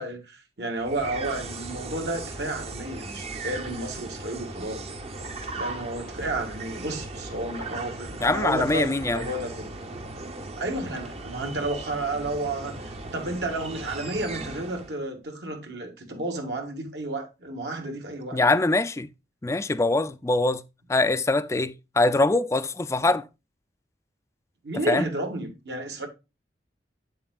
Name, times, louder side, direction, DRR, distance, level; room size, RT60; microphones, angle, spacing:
voice 1, 0.0-4.8 5.6-9.7 10.6-18.4 24.6-26.1, right 2 dB, 70° right, 1.6 m, -32 dB
sound 1, 0.8-15.0, right 2 dB, 35° right, 0.7 m, -37 dB
voice 2, 8.2-9.2 18.3-19.1 19.4-20.6 20.9-23.2 24.9-25.1, left 2 dB, 15° left, 0.3 m, -23 dB
7.8 x 7.4 x 2.3 m
head